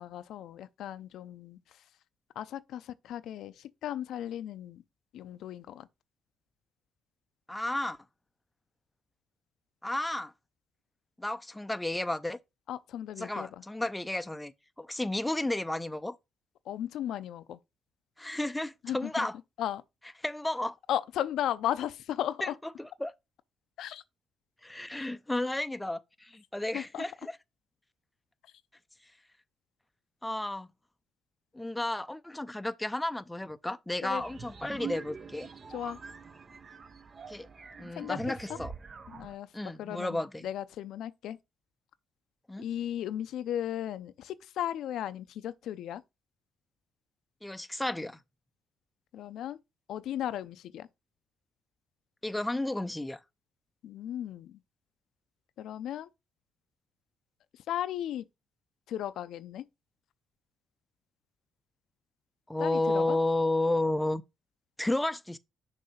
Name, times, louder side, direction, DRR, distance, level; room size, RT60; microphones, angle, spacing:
voice 1, 0.0-1.6 2.4-4.8 5.1-5.9 12.7-13.6 16.7-17.6 18.8-19.3 19.6-19.8 20.9-22.5 23.8-24.0 25.0-25.1 26.7-27.0 34.0-34.2 35.7-36.0 38.0-38.2 38.5-38.6 39.1-39.5 39.8-41.4 42.6-46.0 49.1-49.6 49.9-50.9 53.8-54.6 55.6-56.1 57.7-58.2 58.9-59.6 62.6-63.2, left 11 dB, 80° left, 0.5 m, -36 dB
voice 2, 7.5-8.0 9.8-10.3 11.2-12.4 13.2-14.5 14.8-16.2 18.2-19.3 20.2-20.8 22.4-22.5 22.8-23.1 24.6-27.4 30.2-30.7 31.5-35.5 37.3-37.5 37.8-38.7 39.5-40.5 42.5-42.7 47.4-48.2 52.2-53.2 62.5-64.2 64.8-65.4, left 2 dB, 10° left, 0.5 m, -32 dB
sound 1, 34.2-39.4, right 6 dB, 40° right, 0.6 m, -44 dB
6.5 x 2.7 x 5.6 m
cardioid pair, 90°, 0 cm